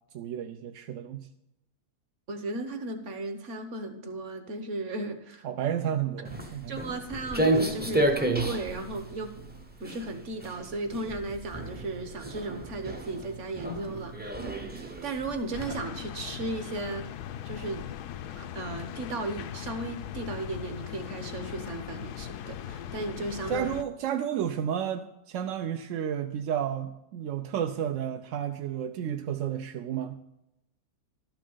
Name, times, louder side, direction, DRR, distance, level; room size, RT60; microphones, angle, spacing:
voice 1, 0.1-1.3 5.4-6.8 23.5-30.2, right 9 dB, 70° right, 6 dB, 0.8 m, -32 dB
voice 2, 2.3-5.5 6.7-9.3 9.8-17.1 17.4-18.0 18.3-23.7, right 2 dB, 55° right, 7 dB, 1.3 m, -35 dB
Walk footsteps, 6.2-15.7, right 1 dB, 10° right, 0.4 m, -31 dB
City Night field recording, 15.5-23.8, left 10 dB, 85° left, 1.1 m, -39 dB
12.0 x 6.0 x 5.5 m, 0.87 s
omnidirectional pair, 1.7 m